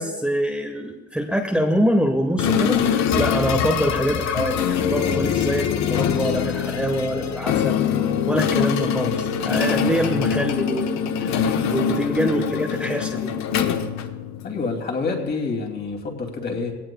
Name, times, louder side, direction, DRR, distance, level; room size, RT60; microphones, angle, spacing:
voice 1, 0.0-7.8 8.3-13.3, equal, 5° right, 0 dB, 1.2 m, -25 dB
sound 1, 2.4-14.7, left 8 dB, 65° left, 1.1 m, -23 dB
voice 2, 14.4-16.7, left 4 dB, 35° left, 1 dB, 2.6 m, -27 dB
20.5 x 17.5 x 2.3 m, 1.2 s
cardioid pair, 130°, 31 cm